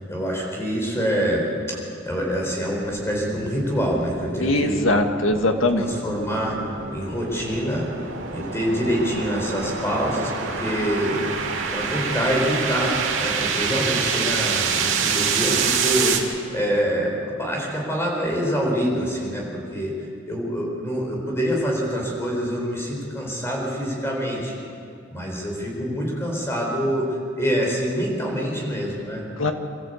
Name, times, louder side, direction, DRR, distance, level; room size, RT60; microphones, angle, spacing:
voice 1, 0.0-4.8 5.7-6.6 6.9-7.9 8.3-11.4 11.7-24.6 25.1-29.2, equal, 15° left, -2 dB, 4.9 m, -26 dB
sound 1, 2.8-16.2, right 5 dB, 80° right, 2.7 m, -27 dB
voice 2, 4.4-5.9 29.4-29.5, left 1 dB, 85° left, 5 dB, 1.8 m, -21 dB
27.0 x 14.0 x 8.4 m, 2.5 s
head